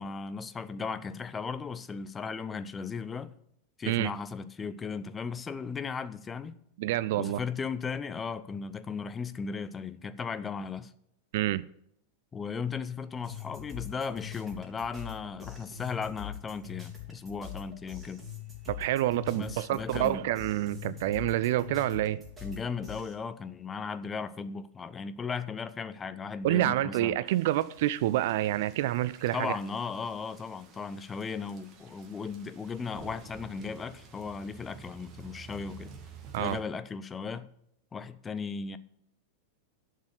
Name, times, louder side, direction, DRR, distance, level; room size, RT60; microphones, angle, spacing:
voice 1, 0.0-3.3 3.8-6.6 7.2-10.9 12.3-18.2 19.3-20.2 22.4-27.2 29.3-35.9 36.4-37.5 37.9-38.8, left 5 dB, 20° left, 0.6 m, -36 dB
voice 2, 6.8-7.4 11.3-11.6 18.7-22.2 26.4-29.6 36.3-36.6, right 14 dB, 50° right, 0.4 m, -28 dB
sound 1, 13.2-23.1, left 9 dB, 15° right, 3.3 m, -44 dB
sound 2, 27.3-36.6, right 5 dB, 30° right, 1.8 m, -51 dB
11.5 x 6.6 x 6.5 m
figure-of-eight pair, 90°, 0 cm